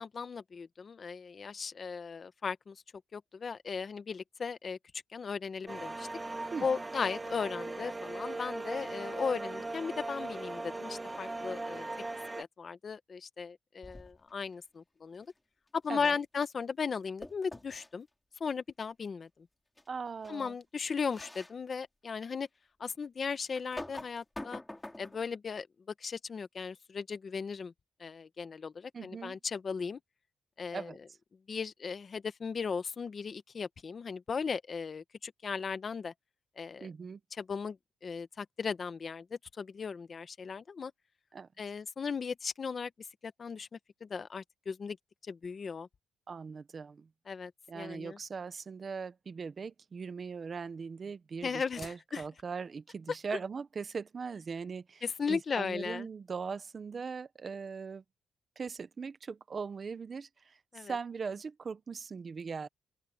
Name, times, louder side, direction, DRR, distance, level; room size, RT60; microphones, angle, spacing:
voice 1, 0.0-2.8 3.1-4.8 5.1-6.1 6.6-11.9 12.4-15.3 15.7-18.1 18.4-19.3 20.3-22.5 22.8-24.6 25.0-25.7 26.0-27.7 28.0-30.0 30.6-30.9 31.5-36.1 36.6-36.9 37.4-37.8 38.0-40.9 41.6-42.9 43.2-45.0 45.3-45.9 47.3-48.2 51.4-52.2 55.0-56.1 60.7-60.9, left 5 dB, 40° left, 1.2 m, -37 dB
sound 1, 5.7-12.4, right 2 dB, 15° right, 1.8 m, -39 dB
sound 2, 13.8-14.3 17.2-17.9 19.8-19.9 20.2-20.4 21.1-21.5 22.1-22.2 23.5-25.3, left 1 dB, 10° left, 5.0 m, -45 dB
voice 2, 19.9-20.5 28.9-29.4 30.7-31.0 36.8-37.2 41.3-41.5 46.3-47.1 47.7-58.0 58.6-62.7, right 5 dB, 35° right, 1.0 m, -40 dB
open air
cardioid pair, 130°, 0 cm